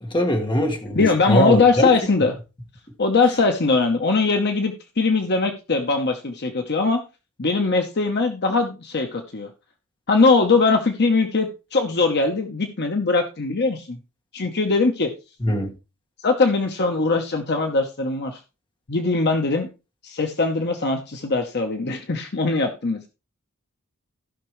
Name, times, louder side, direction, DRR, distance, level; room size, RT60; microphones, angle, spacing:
voice 1, 0.0-1.9 15.4-15.7, left 1 dB, 20° left, 2 dB, 1.7 m, -22 dB
voice 2, 1.0-2.3 3.0-7.0 7.4-9.5 10.1-14.0 14.3-15.1 16.2-18.4 18.9-19.7 20.0-23.1, left 3 dB, 50° left, 5 dB, 0.9 m, -21 dB
15.5 x 5.9 x 3.1 m, 0.28 s
head